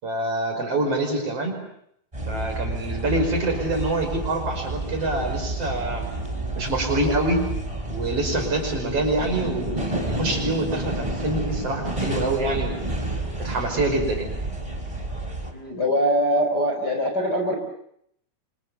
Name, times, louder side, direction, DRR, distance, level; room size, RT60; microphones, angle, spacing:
voice 1, 0.0-1.6 2.3-6.1 6.6-7.5 7.9-12.8 13.4-14.3, right 2 dB, 40° right, 3 dB, 6.2 m, -26 dB
sound 1, 2.1-15.5, right 1 dB, 10° right, 4.0 m, -30 dB
voice 2, 15.5-17.6, equal, 25° left, 3 dB, 4.4 m, -23 dB
29.0 x 26.0 x 7.1 m, 0.73 s
omnidirectional pair, 4.3 m